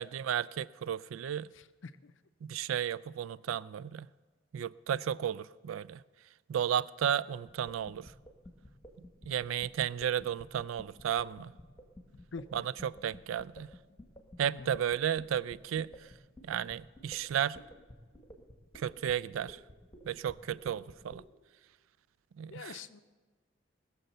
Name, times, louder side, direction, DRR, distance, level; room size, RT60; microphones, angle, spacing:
voice 1, 0.0-1.5 2.4-4.1 4.5-6.0 6.5-8.1 9.3-11.5 12.5-13.7 14.4-15.9 16.5-17.6 18.7-19.6 20.1-21.2 22.4-22.8, right 9 dB, 80° right, 20 dB, 0.3 m, -33 dB
voice 2, 1.5-2.1 12.3-12.4 14.5-14.7 22.5-23.0, left 5 dB, 70° left, 12 dB, 0.5 m, -45 dB
sound 1, 7.5-21.2, equal, 15° left, 1.5 m, -51 dB
20.5 x 7.0 x 6.7 m, 1.4 s
head